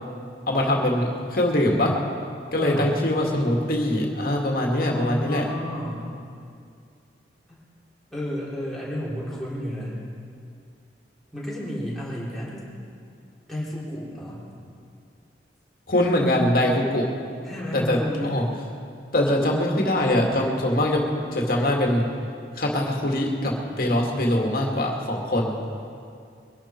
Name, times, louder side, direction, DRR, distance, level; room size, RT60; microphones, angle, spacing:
voice 1, 0.5-2.0 2.5-5.5 15.9-17.1 17.7-18.4 19.1-22.0 22.6-25.6, left 1 dB, 55° left, 0 dB, 2.1 m, -23 dB
voice 2, 2.6-2.9 4.6-6.1 7.5-7.6 8.1-10.0 11.3-12.6 13.5-14.5 17.4-18.4, equal, ahead, -8 dB, 3.9 m, -32 dB
23.5 x 11.5 x 4.5 m, 2.4 s
head